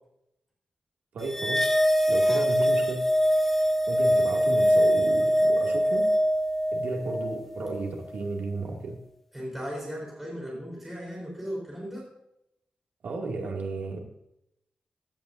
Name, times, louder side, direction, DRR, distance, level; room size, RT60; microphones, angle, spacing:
voice 1, 1.1-1.7 2.1-3.0 3.9-6.1 6.7-9.0 13.0-14.0, right 3 dB, 80° right, 1 dB, 2.4 m, -33 dB
sound 1, 1.3-7.9, equal, 5° left, 0.8 m, -23 dB
voice 2, 9.3-12.1, equal, 10° right, -4 dB, 4.0 m, -36 dB
15.5 x 11.0 x 2.7 m, 0.83 s
wide cardioid pair, 175°, 3 cm